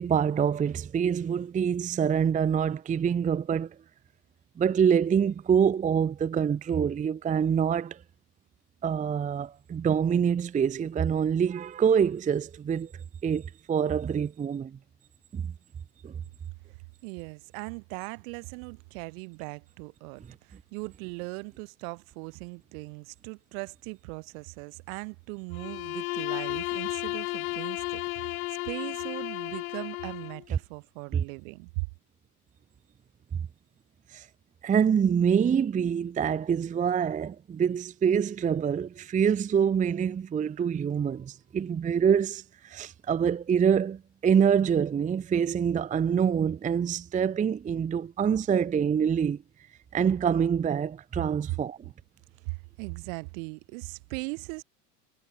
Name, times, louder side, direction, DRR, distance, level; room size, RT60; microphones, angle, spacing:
voice 1, 0.0-3.7 4.6-8.0 8.8-12.9 13.2-14.8 15.3-15.5 16.0-16.1 31.1-31.2 34.1-34.3 34.6-49.4 49.9-51.8, right 7 dB, 15° right, 0.7 m, -26 dB
voice 2, 17.0-31.9 52.4-54.6, right 34 dB, 60° right, 2.0 m, -39 dB
Bowed string instrument, 25.5-30.4, left 23 dB, 65° left, 0.6 m, -33 dB
hypercardioid pair, 90°, 47 cm